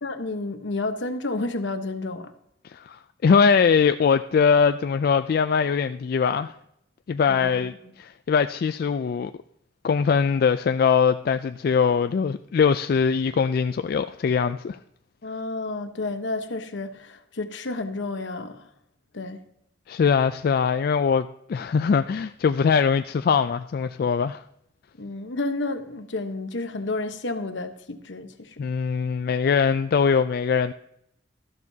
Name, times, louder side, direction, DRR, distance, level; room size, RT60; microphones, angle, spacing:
voice 1, 0.0-2.3 7.3-7.6 15.2-18.7 19.1-19.4 25.0-28.6, left 2 dB, 75° left, 1.0 m, -31 dB
voice 2, 2.6-6.5 7.1-9.3 9.8-14.8 19.9-24.4 28.6-30.7, left 6 dB, 55° left, 0.3 m, -22 dB
13.0 x 12.0 x 2.8 m
head